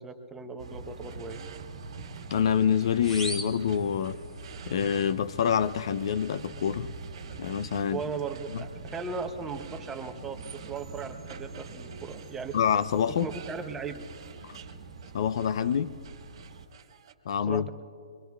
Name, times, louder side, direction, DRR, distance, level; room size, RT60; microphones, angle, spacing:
voice 1, 0.0-1.4 7.9-12.6 13.2-14.1 17.5-17.7, right 5 dB, 10° right, 0.7 m, -37 dB
sound 1, 0.6-16.7, right 3 dB, 85° right, 1.3 m, -44 dB
sound 2, 1.0-17.1, right 8 dB, 50° right, 1.1 m, -52 dB
voice 2, 2.3-4.2 4.7-6.9 7.4-8.0 8.5-8.6 12.5-13.3 14.4-14.6 15.1-15.9 17.3-17.7, left 8 dB, 55° left, 0.4 m, -26 dB
sound 3, 3.0-4.6, equal, 5° left, 1.1 m, -39 dB
23.0 x 22.5 x 2.3 m
hypercardioid pair, 160°, 3 cm